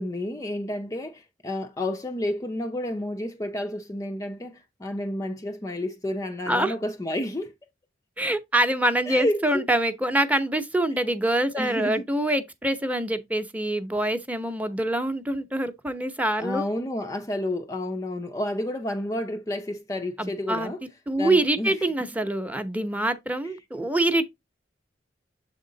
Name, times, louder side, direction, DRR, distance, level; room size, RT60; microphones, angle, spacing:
voice 1, 0.0-7.5 9.1-9.7 11.6-12.1 16.4-20.8 21.2-22.1, left 1 dB, 20° left, 0.4 m, -30 dB
voice 2, 8.2-16.6 20.2-20.7 21.1-24.2, right 1 dB, 10° right, 0.8 m, -25 dB
7.6 x 3.7 x 3.8 m
head